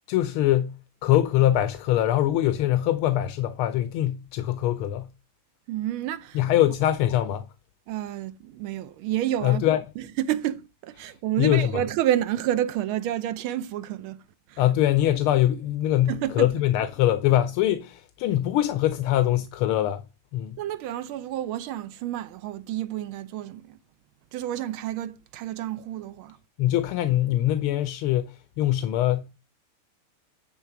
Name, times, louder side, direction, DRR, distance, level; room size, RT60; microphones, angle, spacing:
voice 1, 0.1-5.1 6.3-7.5 9.4-9.8 11.0-11.1 11.4-11.7 14.6-20.1 20.3-20.6 26.6-29.3, left 13 dB, 85° left, 1.6 m, -23 dB
voice 2, 5.7-6.4 7.9-9.6 10.0-14.2 14.5-14.6 16.1-16.5 20.6-23.8 24.3-26.4, right 12 dB, 80° right, 1.4 m, -29 dB
10.5 x 3.8 x 5.9 m
omnidirectional pair, 2.4 m